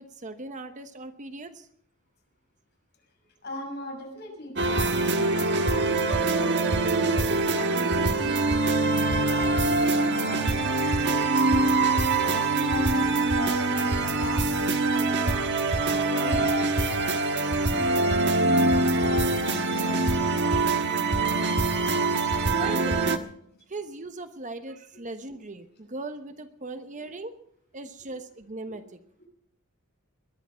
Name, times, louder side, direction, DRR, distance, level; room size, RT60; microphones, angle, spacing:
voice 1, 0.0-1.7 22.5-23.1 23.7-27.3 27.7-29.0, right 2 dB, 35° right, 9 dB, 1.0 m, -38 dB
voice 2, 3.4-7.1 7.5-8.6 8.9-10.8 11.0-11.7 12.2-15.3 15.8-16.6 20.0-20.1 21.2-21.3 27.1-27.2 28.7-28.8, left 1 dB, 50° left, 1 dB, 6.4 m, -40 dB
sound 1, 4.6-23.2, right 3 dB, 55° right, 1.4 m, -24 dB
21.0 x 11.0 x 5.7 m, 0.71 s
head